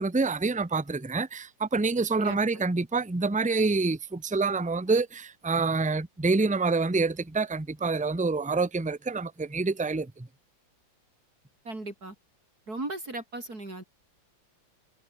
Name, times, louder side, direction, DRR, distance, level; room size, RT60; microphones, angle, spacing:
voice 1, 0.0-10.3, right 3 dB, 10° right, 0.3 m, -27 dB
voice 2, 2.2-2.6 11.6-12.1 12.7-13.8, right 2 dB, 55° right, 6.1 m, -37 dB
omnidirectional pair, 2.0 m